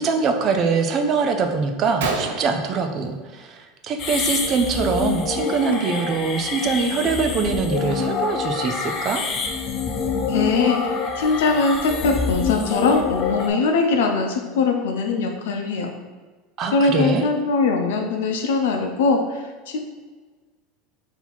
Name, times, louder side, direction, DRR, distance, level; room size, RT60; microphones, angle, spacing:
voice 1, 0.0-9.2 16.6-17.3, right 5 dB, 30° right, 5 dB, 0.4 m, -23 dB
Gunshot gunfire, 1.3-1.4 1.7-1.8 2.0-3.6 3.9-4.3 4.5-4.8 5.6-5.8 6.3-6.4 6.8-8.4, right 4 dB, 80° right, 0.6 m, -32 dB
sound 1, 4.0-13.5, left 5 dB, 35° left, 0.5 m, -26 dB
voice 2, 10.3-15.9 16.7-19.8, left 4 dB, 85° left, 4 dB, 0.7 m, -21 dB
3.9 x 2.8 x 4.3 m, 1.3 s
supercardioid pair, 155°, 0 cm